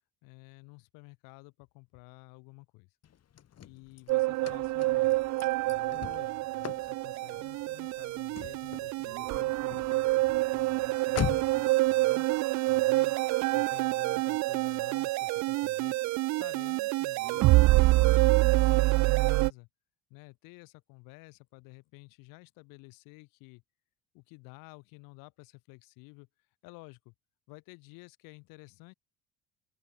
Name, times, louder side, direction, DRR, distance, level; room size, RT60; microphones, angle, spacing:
voice 1, 0.2-2.9 3.6-5.2 5.7-12.3 12.7-13.2 13.5-16.0 16.3-17.6 18.1-19.7 20.1-23.6 24.1-26.3 26.6-27.1 27.5-28.9, left 27 dB, 75° left, 3.6 m, -52 dB
Car / Slam, 3.0-11.7, left 10 dB, 45° left, 2.9 m, -41 dB
sound 1, 4.1-19.5, right 20 dB, 55° right, 0.5 m, -26 dB
open air
supercardioid pair, 75°, 34 cm